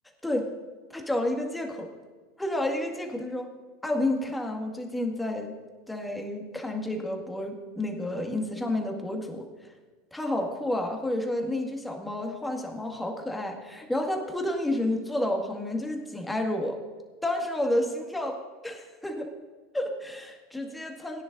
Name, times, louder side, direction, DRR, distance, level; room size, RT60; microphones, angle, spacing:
voice 1, 0.9-1.9 2.4-3.5 3.8-5.5 5.9-9.7 10.1-16.8 17.2-18.4 18.6-19.3 19.7-21.2, left 1 dB, 10° left, 2 dB, 2.0 m, -30 dB
18.0 x 10.0 x 2.7 m, 1.4 s
hypercardioid pair, 85°, 0 cm